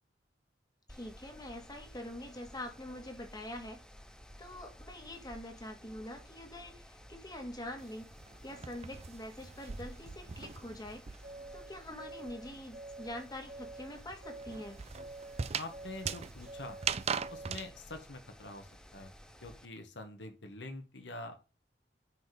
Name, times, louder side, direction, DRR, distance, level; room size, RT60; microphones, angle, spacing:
voice 1, 0.9-3.8 4.4-8.1 8.4-11.0 11.5-14.8, left 1 dB, 20° left, 4 dB, 2.0 m, -45 dB
Mechanical fan, 0.9-19.7, equal, 5° left, 0.7 m, -55 dB
sound 1, 7.8-11.5 11.8-17.7, right 6 dB, 35° right, 0.5 m, -40 dB
sound 2, 11.2-17.8, right 2 dB, 60° right, 3.3 m, -48 dB
voice 2, 15.6-16.8 17.3-19.1 19.4-21.4, left 2 dB, 75° left, 7 dB, 1.7 m, -45 dB
9.1 x 4.3 x 5.1 m, 0.32 s
head